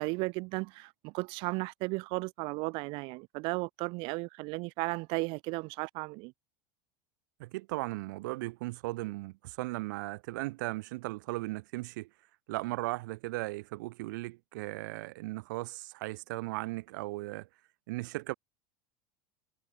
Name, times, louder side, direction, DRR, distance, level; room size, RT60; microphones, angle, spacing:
voice 1, 0.0-6.3, right 27 dB, 60° right, 0.6 m, -35 dB
voice 2, 7.4-12.1 12.5-17.5 17.9-18.3, right 21 dB, 75° right, 1.6 m, -37 dB
supercardioid pair, 115°, 10 cm